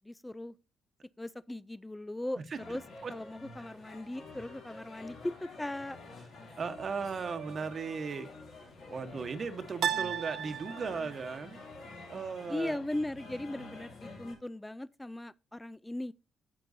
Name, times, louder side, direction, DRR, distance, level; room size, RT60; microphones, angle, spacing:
voice 1, 0.0-0.5 1.2-2.8 3.1-6.0 12.5-16.1, left 1 dB, 10° left, 0.3 m, -38 dB
sound 1, 2.5-14.3, left 3 dB, 80° left, 3.6 m, -49 dB
voice 2, 6.6-8.3 8.9-11.6 12.1-12.8, right 5 dB, 50° right, 1.0 m, -37 dB
sound 2, 7.2-7.9 9.8-11.3, right 9 dB, 70° right, 0.6 m, -36 dB
9.8 x 7.6 x 2.6 m
cardioid pair, 75°, 0 cm